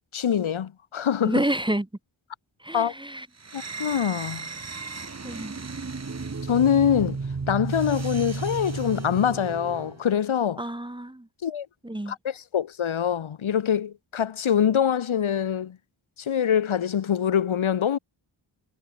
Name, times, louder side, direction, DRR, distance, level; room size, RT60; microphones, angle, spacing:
voice 1, 0.1-1.4 2.7-2.9 3.5-4.5 6.5-7.2 7.5-10.6 11.4-11.7 12.1-15.8 16.2-18.0, left 8 dB, 90° left, 1.2 m, -24 dB
voice 2, 1.2-1.9 2.6-3.3 5.2-5.6 10.6-11.3 11.8-12.1, right 1 dB, 10° right, 1.4 m, -29 dB
sound 1, 3.4-10.0, right 4 dB, 35° right, 1.5 m, -33 dB
wide cardioid pair, 110°, 47 cm